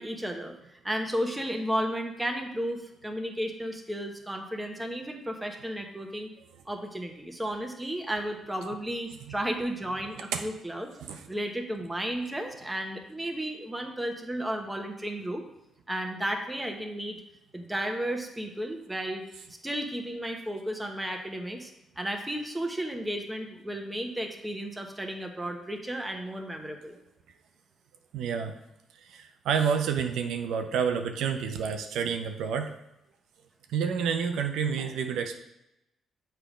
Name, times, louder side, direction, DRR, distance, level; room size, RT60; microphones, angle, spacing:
voice 1, 0.0-6.3 6.7-10.9 11.3-15.4 15.9-17.2 17.5-19.2 19.6-21.7 22.0-27.0, right 1 dB, 10° right, 3 dB, 1.0 m, -33 dB
voice 2, 28.1-28.5 29.0-32.7 33.7-35.4, right 7 dB, 80° right, 6 dB, 0.5 m, -29 dB
6.9 x 3.4 x 5.0 m, 0.87 s
cardioid pair, 90°, 0 cm